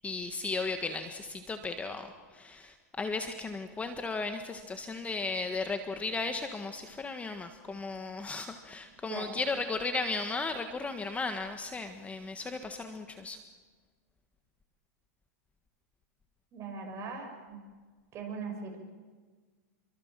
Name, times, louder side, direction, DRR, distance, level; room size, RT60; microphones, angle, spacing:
voice 1, 0.0-13.4, left 3 dB, 15° left, 7 dB, 1.5 m, -35 dB
voice 2, 16.5-17.6 18.1-18.8, right 5 dB, 35° right, 3 dB, 6.9 m, -40 dB
28.0 x 24.0 x 7.6 m, 1.5 s
supercardioid pair, 125°, 9 cm